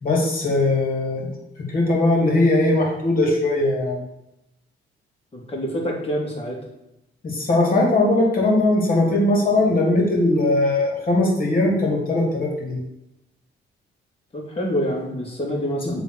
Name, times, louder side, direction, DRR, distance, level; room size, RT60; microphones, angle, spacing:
voice 1, 0.0-1.3 1.7-4.0 7.2-12.8, left 2 dB, 45° left, -1 dB, 2.5 m, -20 dB
voice 2, 5.3-6.6 14.3-16.0, equal, 30° left, -1 dB, 2.4 m, -26 dB
7.4 x 3.5 x 6.1 m, 0.89 s
cardioid pair, 90°, 20 cm